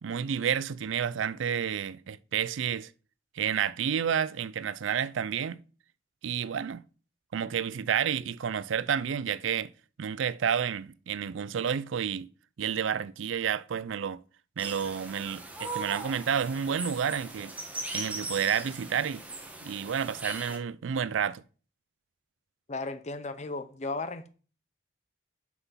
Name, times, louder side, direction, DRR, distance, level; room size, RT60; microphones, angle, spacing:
voice 1, 0.0-2.9 3.3-5.6 6.2-6.8 7.3-9.7 10.0-12.3 12.6-14.2 14.6-17.5 17.9-19.2 19.6-21.4, right 8 dB, 85° right, 0.4 m, -30 dB
sound 1, 14.6-20.6, right 2 dB, 10° right, 1.0 m, -39 dB
voice 2, 22.7-24.3, left 3 dB, 35° left, 0.6 m, -35 dB
6.0 x 5.6 x 5.6 m
head